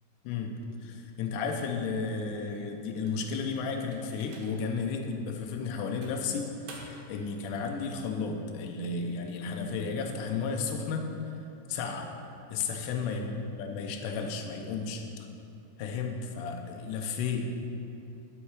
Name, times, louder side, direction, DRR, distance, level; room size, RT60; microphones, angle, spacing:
voice 1, 0.8-11.1 11.7-12.1 12.5-13.3 13.6-15.1 15.8-17.5, left 5 dB, 75° left, 3 dB, 2.2 m, -33 dB
sound 1, 3.0-4.8 5.3-5.4 6.0-7.2, right 3 dB, 90° right, 2.9 m, -51 dB
11.5 x 5.7 x 4.8 m, 2.7 s
omnidirectional pair, 4.0 m